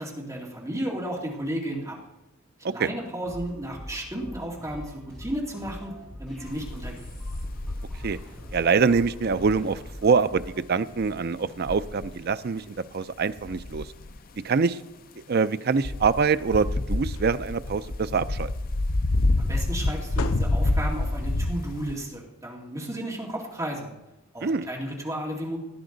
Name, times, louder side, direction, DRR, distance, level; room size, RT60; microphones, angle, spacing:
voice 1, 0.0-2.0 2.6-7.1 19.4-23.9 24.3-25.6, right 1 dB, 15° right, -2 dB, 2.3 m, -33 dB
sound 1, 3.2-10.6, equal, 5° left, 5.3 m, -43 dB
sound 2, 6.5-8.7 9.2-9.9 11.0-11.2 11.6-12.2 13.4-14.2 15.8-21.9, left 2 dB, 45° left, 0.6 m, -28 dB
voice 2, 8.5-13.9 14.4-14.8 15.3-18.5 24.4-24.7, right 5 dB, 45° right, 13 dB, 0.4 m, -24 dB
sound 3, 16.7-16.8 17.0-18.1 19.8-21.0, left 3 dB, 85° left, 0.7 m, -36 dB
18.0 x 11.0 x 3.9 m, 0.98 s
head